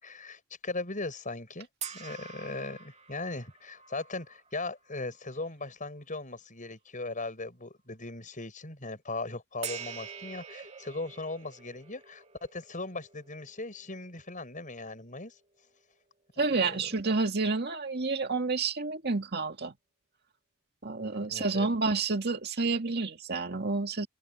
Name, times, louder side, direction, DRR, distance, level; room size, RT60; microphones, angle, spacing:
voice 1, 0.0-1.7 1.9-15.3 16.4-16.8 21.2-21.7, left 2 dB, 35° left, 7.3 m, -38 dB
sound 1, 1.8-5.3 5.9-6.0 9.6-16.0, right 7 dB, 30° right, 2.4 m, -46 dB
voice 2, 16.4-19.7 20.8-24.1, right 3 dB, 45° right, 2.0 m, -29 dB
head